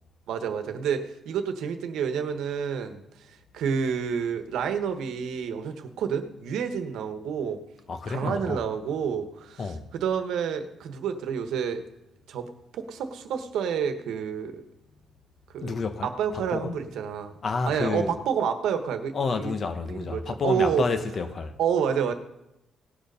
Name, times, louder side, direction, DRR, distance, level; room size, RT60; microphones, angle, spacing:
voice 1, 0.3-7.6 8.1-11.8 12.3-14.7 15.5-15.7 16.0-17.3 17.7-19.5 19.8-20.8 21.6-22.1, right 7 dB, 80° right, 1.2 m, -29 dB
voice 2, 7.9-8.6 9.6-9.9 15.6-16.8 17.4-18.1 19.1-21.5, left 4 dB, 45° left, 1.1 m, -30 dB
17.5 x 6.6 x 5.5 m
cardioid pair, 90°, 0 cm